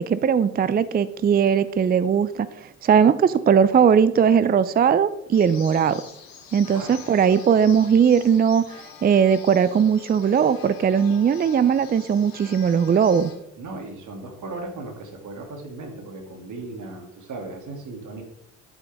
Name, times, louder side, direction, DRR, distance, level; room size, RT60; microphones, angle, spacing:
voice 1, 0.0-6.0 6.5-8.7 9.0-13.3, right 7 dB, 25° right, 16 dB, 0.5 m, -19 dB
sound 1, 5.3-13.3, left 7 dB, 60° left, 2.6 m, -44 dB
voice 2, 13.6-18.2, right 2 dB, 50° right, 3 dB, 2.7 m, -37 dB
11.0 x 8.9 x 3.6 m, 0.79 s
hypercardioid pair, 50°, 40 cm